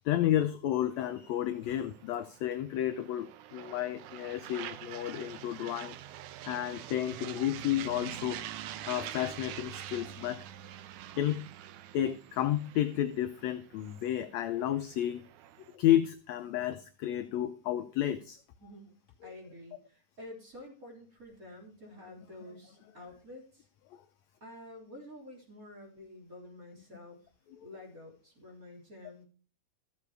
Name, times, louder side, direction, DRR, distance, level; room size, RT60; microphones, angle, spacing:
voice 1, 0.0-5.9 6.4-8.4 8.9-10.4 11.2-11.5 11.9-15.2 15.7-18.4 23.9-24.0, left 12 dB, 75° left, 10 dB, 1.6 m, -31 dB
sound 1, 0.9-15.8, right 12 dB, 75° right, 2.1 m, -46 dB
voice 2, 18.6-18.9 19.2-23.7 24.4-27.2 27.6-29.3, left 1 dB, 25° right, -1 dB, 3.6 m, -49 dB
14.0 x 7.3 x 4.7 m, 0.39 s
omnidirectional pair, 3.8 m